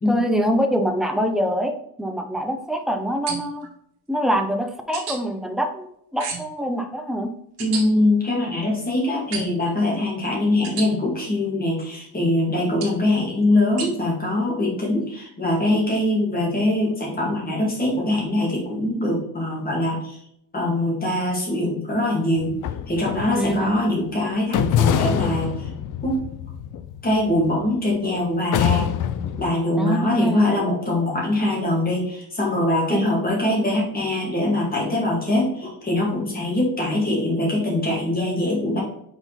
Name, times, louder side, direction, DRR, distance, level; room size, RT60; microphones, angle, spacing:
voice 1, 0.1-3.7 4.1-7.3 23.3-23.7 29.8-30.5 32.9-33.0, equal, ahead, 5 dB, 0.5 m, -24 dB
sound 1, 3.3-3.7 4.9-5.2 6.2-6.6 7.6-7.8 9.3-9.7 10.6-10.9 12.8-13.0 13.8-13.9, right 5 dB, 65° right, 1.9 m, -31 dB
voice 2, 7.6-20.2 20.5-22.6 22.9-25.7 26.0-26.2 27.0-28.9 29.4-38.8, left 1 dB, 20° left, -3 dB, 2.3 m, -23 dB
sound 2, 22.4-23.8 24.5-27.9 28.5-29.5, left 9 dB, 50° left, 0.4 m, -25 dB
5.9 x 4.3 x 4.0 m, 0.72 s
cardioid pair, 160°, 41 cm